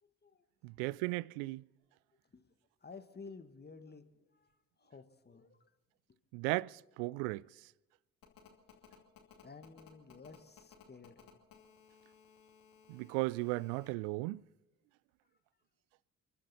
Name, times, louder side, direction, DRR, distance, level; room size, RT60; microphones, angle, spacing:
voice 1, 0.0-0.5 2.1-5.7 6.1-6.2 9.4-11.3, left 4 dB, 25° left, 1.7 m, -54 dB
voice 2, 0.6-1.6 6.3-7.4 12.9-14.4, right 22 dB, 65° right, 0.5 m, -36 dB
Telephone, 8.2-13.9, left 9 dB, 55° left, 2.6 m, -60 dB
29.0 x 11.5 x 4.2 m
figure-of-eight pair, 40°, 40 cm